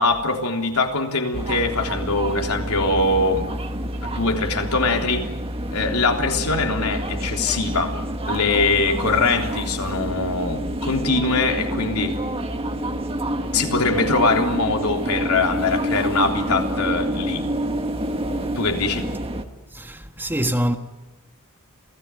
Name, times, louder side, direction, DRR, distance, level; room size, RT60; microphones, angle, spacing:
voice 1, 0.0-3.5 4.0-5.3 5.7-8.0 8.3-12.2 13.5-17.5 18.6-19.1, left 3 dB, 85° left, 3.6 m, -22 dB
sound 1, 1.3-19.4, right 1 dB, 25° right, 1.8 m, -28 dB
voice 2, 19.7-20.8, equal, 10° right, 1.5 m, -24 dB
28.0 x 17.5 x 9.2 m
head